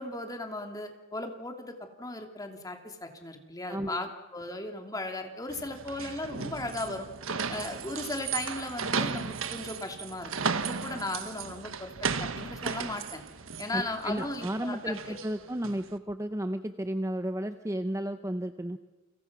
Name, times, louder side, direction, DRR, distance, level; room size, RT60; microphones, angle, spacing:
voice 1, 0.0-4.1 4.3-7.1 7.5-10.3 10.8-13.2 13.6-14.9, left 2 dB, 15° left, 4 dB, 2.8 m, -36 dB
voice 2, 3.7-4.0 13.7-18.8, right 1 dB, 15° right, 9 dB, 0.7 m, -33 dB
sound 1, 5.5-15.9, right 5 dB, 75° right, 1.4 m, -35 dB
29.5 x 25.5 x 6.1 m, 1.2 s
head